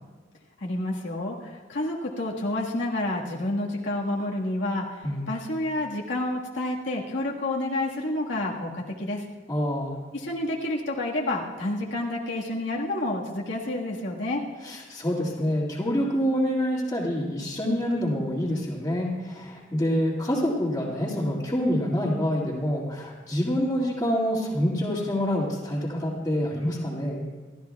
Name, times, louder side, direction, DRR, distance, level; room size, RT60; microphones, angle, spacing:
voice 1, 0.6-9.2 10.1-14.4, left 1 dB, 70° left, -2 dB, 1.7 m, -29 dB
voice 2, 9.5-9.9 14.6-27.2, equal, 15° left, -10 dB, 2.3 m, -26 dB
28.0 x 13.0 x 2.3 m, 1.4 s
head